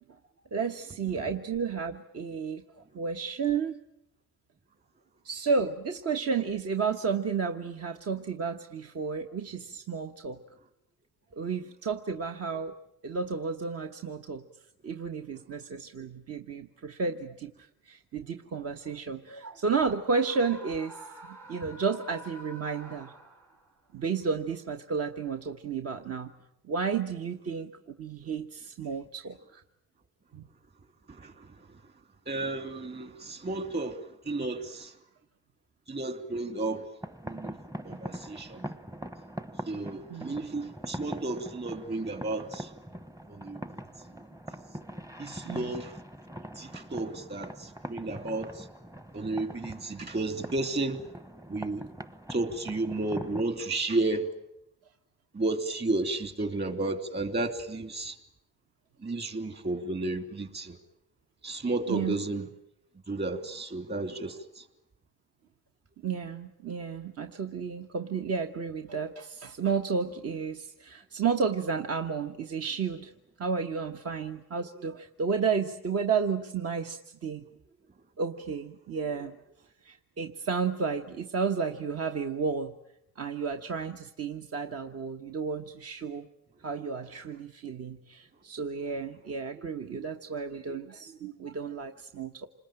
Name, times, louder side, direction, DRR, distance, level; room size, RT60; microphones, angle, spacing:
voice 1, 0.5-3.8 5.2-10.4 11.3-12.8 13.0-14.4 14.8-23.1 23.9-26.3 26.6-29.6 30.3-30.4 40.1-40.4 45.4-45.7 61.9-62.2 66.0-73.1 73.4-77.4 78.2-79.4 79.8-82.7 83.2-86.3 86.6-92.5, right 5 dB, 55° right, 1.3 m, -32 dB
Screaming, 20.0-23.7, right 1 dB, 80° right, 5.9 m, -48 dB
voice 2, 31.1-31.8 32.3-35.0 35.9-36.8 37.2-37.6 37.8-38.6 39.7-42.7 43.3-43.8 45.2-46.0 46.5-48.7 49.1-51.0 51.5-51.9 52.3-54.3 55.3-58.2 59.0-60.8 61.4-62.5 63.1-64.7, right 2 dB, 35° right, 3.1 m, -33 dB
sound 1, 37.0-53.4, right 1 dB, 10° right, 1.0 m, -42 dB
27.5 x 20.5 x 9.0 m
cardioid pair, 90°, 30 cm